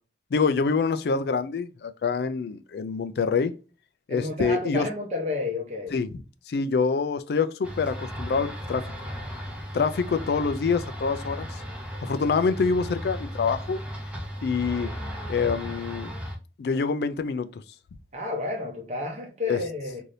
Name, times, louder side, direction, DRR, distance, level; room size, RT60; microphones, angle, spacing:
voice 1, 0.3-3.6 4.1-4.9 5.9-6.2 6.5-8.8 9.7-11.5 12.0-13.8 14.4-14.9 15.3-16.1 16.6-17.5 19.5-19.6, left 5 dB, 65° left, 0.3 m, -26 dB
voice 2, 4.1-5.9 18.1-20.0, left 2 dB, 40° right, 0.8 m, -31 dB
sound 1, 7.6-16.4, equal, 5° right, 0.6 m, -36 dB
2.7 x 2.6 x 3.1 m
head